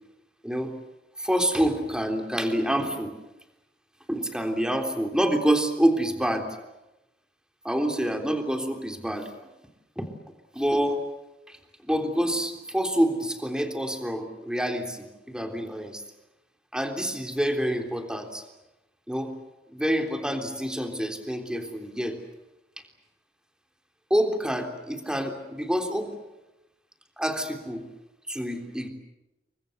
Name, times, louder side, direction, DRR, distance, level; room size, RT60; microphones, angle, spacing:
voice 1, 1.2-3.1 4.1-6.5 7.6-9.3 10.0-10.1 10.5-11.0 11.8-16.0 16.7-18.4 19.1-19.3 19.7-22.2 24.1-26.1 27.2-27.8 28.3-28.9, equal, 5° right, 4 dB, 3.5 m, -27 dB
30.0 x 23.0 x 8.1 m, 0.98 s
head